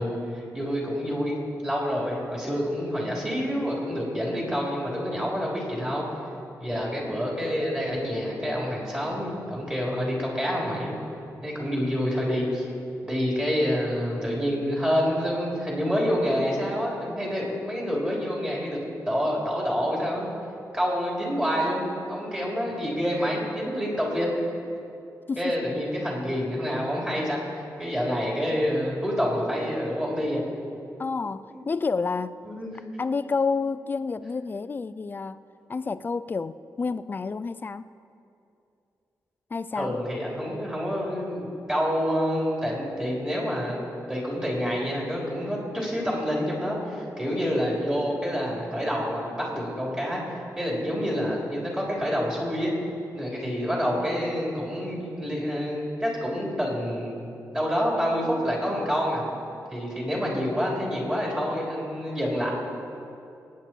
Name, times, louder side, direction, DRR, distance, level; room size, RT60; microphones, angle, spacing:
voice 1, 0.0-1.4 1.6-6.0 6.6-11.0 11.4-12.7 13.0-18.8 19.1-20.3 20.7-24.3 25.4-27.4 27.8-30.4 31.5-31.6 32.4-32.8 39.8-52.7 53.1-59.2 59.7-62.5, equal, 15° right, -3 dB, 3.5 m, -27 dB
voice 2, 31.0-32.4 33.0-35.4 35.7-37.9 39.5-39.9, left 4 dB, 30° left, 14 dB, 0.4 m, -29 dB
23.0 x 9.4 x 4.5 m, 2.6 s
wide cardioid pair, 135°, 6 cm